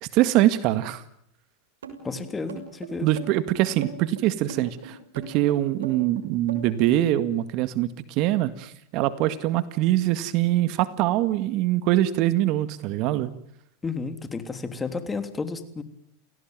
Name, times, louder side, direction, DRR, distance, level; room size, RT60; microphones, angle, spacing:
voice 1, 0.0-1.0 3.0-13.3, right 14 dB, 55° right, 14 dB, 1.9 m, -23 dB
sound 1, 1.8-7.0, right 5 dB, 90° right, 6.5 m, -39 dB
voice 2, 2.0-3.1 13.8-15.8, left 4 dB, 15° left, 10 dB, 3.2 m, -32 dB
29.0 x 18.0 x 9.2 m, 0.73 s
hypercardioid pair, 110°, 0 cm